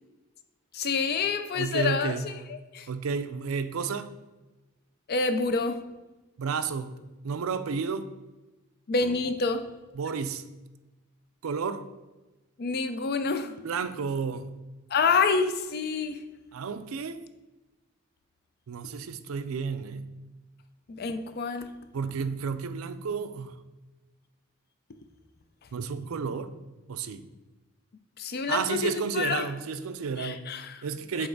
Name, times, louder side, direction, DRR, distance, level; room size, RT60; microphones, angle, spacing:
voice 1, 0.7-2.9 5.1-5.8 8.9-9.6 12.6-13.5 14.9-16.2 20.9-21.7 28.2-29.5 30.2-30.8 31.2-31.3, left 4 dB, 50° left, 0.4 m, -28 dB
voice 2, 1.5-2.2 2.9-4.1 6.4-7.0 7.2-8.1 9.9-10.4 11.4-11.9 13.6-14.5 16.5-17.2 18.7-20.1 21.9-23.6 25.7-26.5 26.9-27.2 28.5-30.5 30.8-31.3, right 5 dB, 85° right, 0.4 m, -31 dB
7.8 x 3.1 x 3.9 m
head